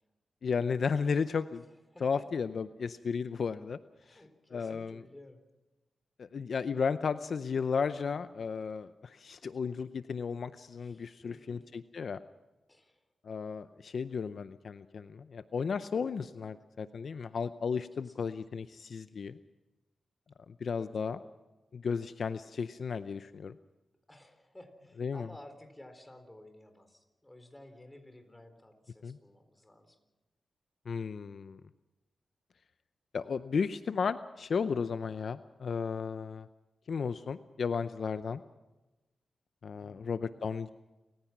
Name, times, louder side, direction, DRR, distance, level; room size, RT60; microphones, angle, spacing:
voice 1, 0.4-1.6 2.0-3.8 4.1-4.2 4.5-5.0 6.2-12.2 13.2-19.4 20.6-21.2 21.7-23.6 25.0-25.3 29.0-29.2 30.9-31.6 33.1-36.5 36.9-38.4 39.6-40.7, left 5 dB, 65° left, 12 dB, 0.6 m, -34 dB
voice 2, 1.9-2.3 4.0-5.4 10.7-11.6 12.7-13.0 18.0-18.3 20.8-21.3 24.1-30.0 39.7-40.5, left 1 dB, 15° left, 7 dB, 4.2 m, -54 dB
29.0 x 16.0 x 6.0 m, 1.1 s
cardioid pair, 75°, 0 cm